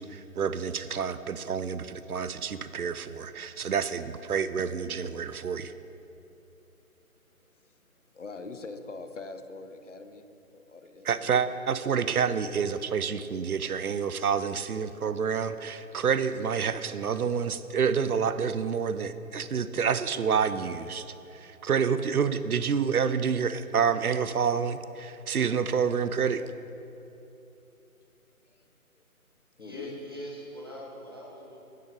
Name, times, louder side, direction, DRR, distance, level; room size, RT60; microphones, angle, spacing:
voice 1, 0.0-5.7 11.1-21.1 21.3-26.4, right 6 dB, 75° right, 13 dB, 0.6 m, -28 dB
voice 2, 7.4-7.8 8.1-10.3 10.5-11.4 28.5-28.7 29.0-29.1 29.6-30.0, left 3 dB, 55° left, 8 dB, 0.7 m, -43 dB
voice 3, 29.6-31.6, equal, 15° right, -4 dB, 0.7 m, -41 dB
9.2 x 6.2 x 5.3 m, 3.0 s
figure-of-eight pair, 150°, 44 cm